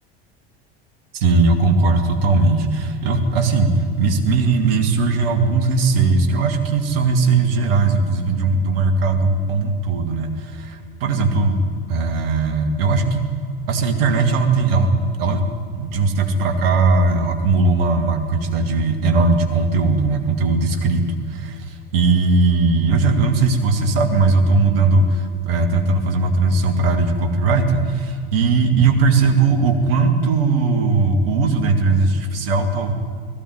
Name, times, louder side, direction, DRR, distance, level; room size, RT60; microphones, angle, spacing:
voice 1, 1.1-3.7 4.0-11.6 11.9-13.3 13.7-14.9 15.2-15.4 15.7-21.0 21.3-32.9, right 3 dB, 70° right, 6 dB, 2.4 m, -18 dB
18.0 x 15.0 x 9.6 m, 2.2 s
hypercardioid pair, 80°, 31 cm